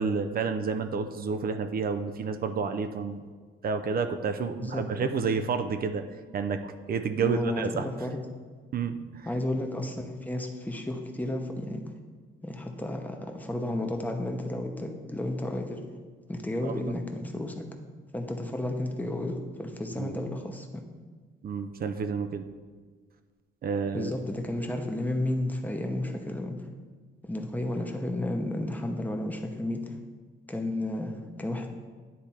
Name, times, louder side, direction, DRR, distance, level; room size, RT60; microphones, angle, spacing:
voice 1, 0.0-3.2 3.6-6.0 6.3-7.9 8.7-9.3 16.6-16.9 20.0-20.2 21.4-22.4 23.6-24.1, right 5 dB, 50° right, 8 dB, 0.5 m, -30 dB
voice 2, 4.6-5.1 7.2-8.2 9.3-11.8 12.4-15.8 16.3-17.6 18.1-20.8 23.9-26.7 27.2-30.0 30.5-31.7, left 1 dB, 10° left, 3 dB, 0.9 m, -32 dB
10.0 x 3.4 x 4.3 m, 1.5 s
cardioid pair, 90°, 20 cm